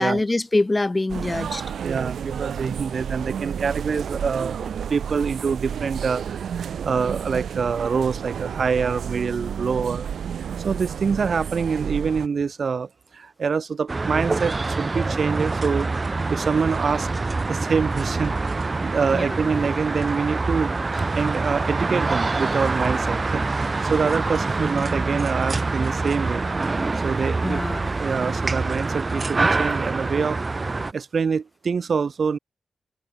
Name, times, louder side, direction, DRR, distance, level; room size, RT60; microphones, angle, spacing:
voice 1, 0.0-1.6 19.1-19.4 27.4-27.8, left 2 dB, 25° left, 1.4 m, -24 dB
sound 1, 1.1-12.3, right 8 dB, 90° right, 0.7 m, -31 dB
voice 2, 1.8-10.1 10.6-15.9 16.3-17.1 17.5-20.7 21.0-26.7 27.0-27.6 28.0-30.4 30.9-32.4, right 5 dB, 60° right, 3.8 m, -25 dB
sound 2, 13.9-30.9, right 3 dB, 35° right, 1.2 m, -25 dB
cardioid pair, 85°, 0 cm